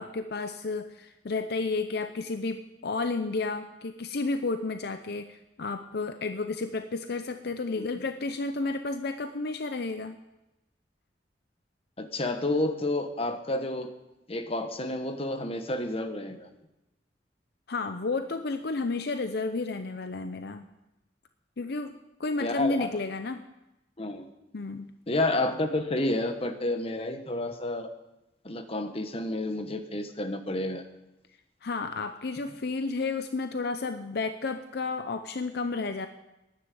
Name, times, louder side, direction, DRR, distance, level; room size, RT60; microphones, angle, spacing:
voice 1, 0.0-10.2 17.7-20.6 21.6-21.9 22.2-23.4 24.5-24.9 31.6-36.1, left 3 dB, 60° left, 9 dB, 0.7 m, -32 dB
voice 2, 12.0-13.9 14.3-16.5 22.4-22.9 24.0-24.2 25.1-27.9 28.4-30.8, left 2 dB, 35° left, 7 dB, 1.2 m, -30 dB
10.0 x 9.9 x 9.2 m, 0.95 s
head